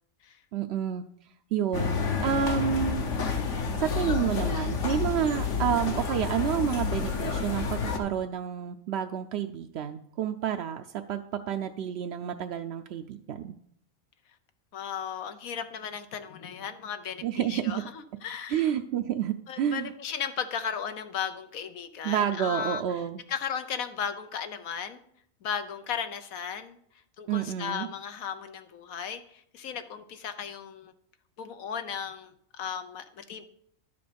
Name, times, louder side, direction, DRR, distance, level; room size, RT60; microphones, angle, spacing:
voice 1, 0.5-1.0 1.5-3.0 3.8-13.5 17.2-17.7 18.5-19.9 22.0-23.2 27.3-27.9, right 9 dB, 65° right, 5 dB, 0.7 m, -29 dB
sound 1, 1.7-8.0, left 5 dB, 60° left, 1.3 m, -29 dB
voice 2, 14.7-18.7 19.5-22.8 23.3-25.0 25.4-26.8 27.2-30.9 31.4-33.4, left 7 dB, 85° left, 9 dB, 1.3 m, -36 dB
11.0 x 6.9 x 5.1 m, 0.69 s
omnidirectional pair, 1.4 m